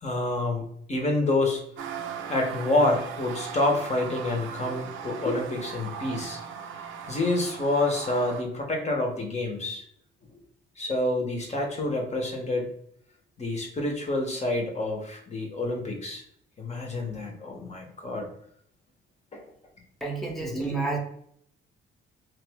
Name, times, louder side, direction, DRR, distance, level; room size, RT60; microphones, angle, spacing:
voice 1, 0.0-1.6 2.3-6.4 7.1-9.8 10.8-12.7 13.4-16.2 16.6-18.3 19.3-19.4 20.4-20.7, left 2 dB, 35° left, 2 dB, 1.0 m, -28 dB
sound 1, 1.8-8.4, right 7 dB, 85° right, 0.5 m, -38 dB
voice 2, 20.0-21.0, right 4 dB, ahead, -1 dB, 0.9 m, -30 dB
3.0 x 2.7 x 3.5 m, 0.67 s
cardioid pair, 90°, 20 cm